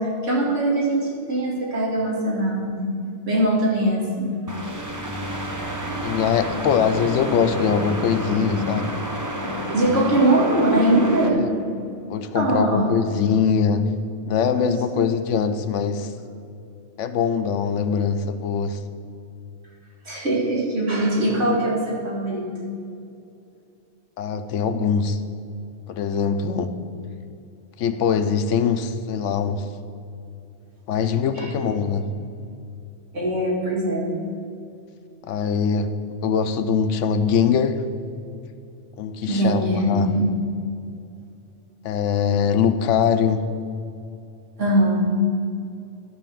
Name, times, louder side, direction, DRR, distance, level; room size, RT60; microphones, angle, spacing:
voice 1, 0.0-3.0 3.3-4.3 9.7-11.4 12.3-12.9 14.6-15.1 20.0-22.4 31.3-31.5 33.1-34.1 39.3-40.2 44.6-45.1, right 1 dB, 90° right, -5 dB, 2.5 m, -21 dB
sound 1, 4.5-11.3, equal, 20° right, 0.8 m, -29 dB
voice 2, 6.0-8.9 9.8-10.0 11.2-11.5 12.1-13.9 14.3-16.1 17.0-18.8 24.2-25.2 25.9-26.7 27.8-29.7 30.9-32.1 35.2-35.9 36.2-37.8 39.0-40.1 41.8-43.4, left 6 dB, 90° left, 10 dB, 1.0 m, -22 dB
12.5 x 4.3 x 7.4 m, 2.6 s
omnidirectional pair, 1.2 m